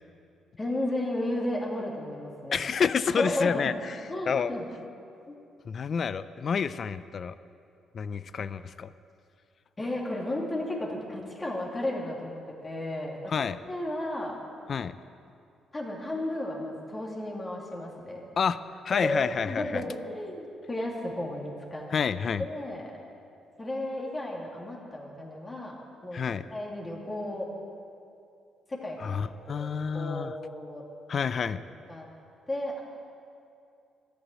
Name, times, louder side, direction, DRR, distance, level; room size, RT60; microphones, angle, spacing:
voice 1, 0.6-2.6 3.1-3.8 4.1-4.7 5.3-5.4 9.8-13.3 13.7-14.4 15.7-18.2 18.9-21.9 22.4-22.8 23.6-25.7 26.0-27.5 28.7-29.1 29.5-30.8 31.9-32.0 32.5-32.8, left 1 dB, 25° left, -2 dB, 2.6 m, -33 dB
voice 2, 2.5-4.0 4.3-4.5 5.7-7.3 7.9-8.9 13.3-13.6 14.7-14.9 18.4-18.6 18.8-19.8 21.9-22.5 26.1-26.4 29.0-30.3 31.1-31.6, left 6 dB, 50° left, 14 dB, 0.4 m, -29 dB
13.5 x 7.0 x 9.0 m, 2.5 s
cardioid pair, 90°, 0 cm